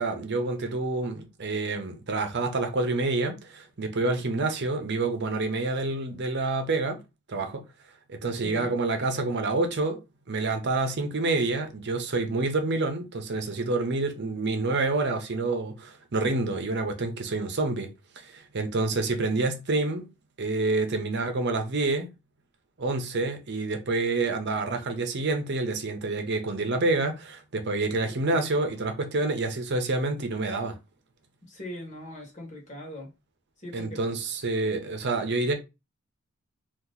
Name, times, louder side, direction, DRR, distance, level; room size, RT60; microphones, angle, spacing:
voice 1, 0.0-7.0 7.3-7.6 8.1-10.0 10.3-20.1 20.4-22.1 22.8-30.8 33.7-35.5, right 3 dB, 55° right, 0.7 m, -28 dB
voice 2, 8.4-8.7 31.4-33.1 33.6-34.0, left 1 dB, 35° left, 1.2 m, -40 dB
2.9 x 2.5 x 3.8 m
head